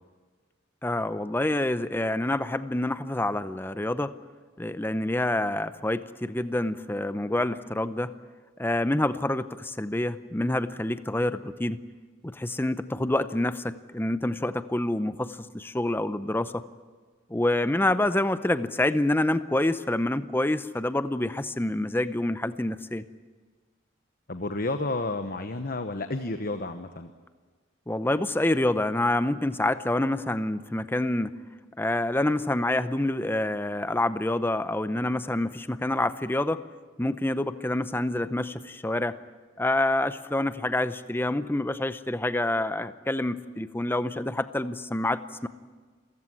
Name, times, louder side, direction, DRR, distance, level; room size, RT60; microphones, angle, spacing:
voice 1, 0.8-4.1 4.6-8.1 8.6-11.8 12.2-16.6 17.3-23.0 27.9-31.3 31.8-36.6 37.0-39.2 39.6-45.5, left 1 dB, 10° left, 13 dB, 0.6 m, -27 dB
voice 2, 24.3-27.1, left 2 dB, 45° left, 8 dB, 1.0 m, -31 dB
28.0 x 15.5 x 9.8 m, 1.5 s
head